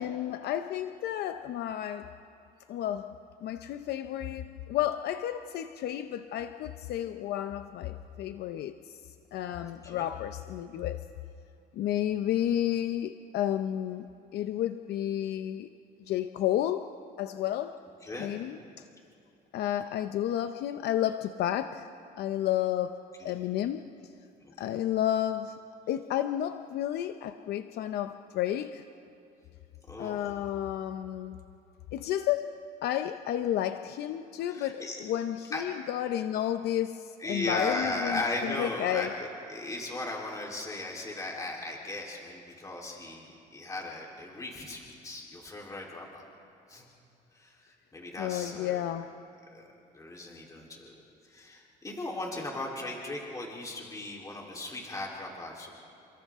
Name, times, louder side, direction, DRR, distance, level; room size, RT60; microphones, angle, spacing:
voice 1, 0.0-2.1 2.7-3.2 3.4-9.0 9.3-11.1 11.7-14.1 14.3-15.7 16.0-16.9 17.2-17.8 18.2-18.8 19.5-21.9 22.2-23.9 24.6-25.6 25.9-28.8 30.0-31.4 31.9-39.1 48.2-49.1, left 11 dB, 70° left, 9 dB, 0.7 m, -31 dB
voice 2, 9.6-10.1 18.0-18.3 23.2-23.4 24.6-24.8 29.9-30.2 34.4-35.0 35.5-35.6 37.2-46.3 46.7-46.9 47.3-48.8 49.5-49.6 49.9-55.7, left 2 dB, 20° left, -2 dB, 3.6 m, -37 dB
29.5 x 26.5 x 3.7 m, 2.6 s
cardioid pair, 110°, 17 cm